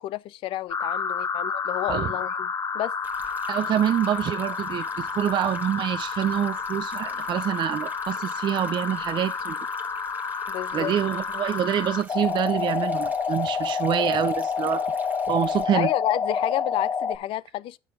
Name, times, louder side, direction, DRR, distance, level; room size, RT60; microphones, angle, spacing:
voice 1, 0.0-2.9 10.5-10.9 15.7-17.8, left 14 dB, 70° left, 0.4 m, -30 dB
sound 1, 0.7-17.2, left 5 dB, 35° left, 0.9 m, -29 dB
Stream, 3.0-15.6, right 3 dB, 20° right, 1.4 m, -48 dB
voice 2, 3.5-9.6 10.7-14.8 15.3-15.9, right 10 dB, 55° right, 0.5 m, -26 dB
8.4 x 6.2 x 4.8 m
supercardioid pair, 75°, 9 cm